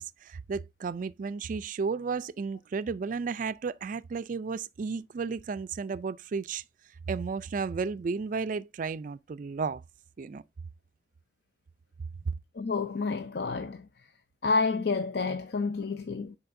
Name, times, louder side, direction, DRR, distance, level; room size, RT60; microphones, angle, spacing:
voice 1, 0.0-6.6 7.1-9.8 10.2-10.4, right 5 dB, 45° right, 0.3 m, -33 dB
voice 2, 12.6-13.9 14.4-16.4, left 4 dB, 65° left, 0.6 m, -29 dB
10.5 x 4.3 x 2.6 m
head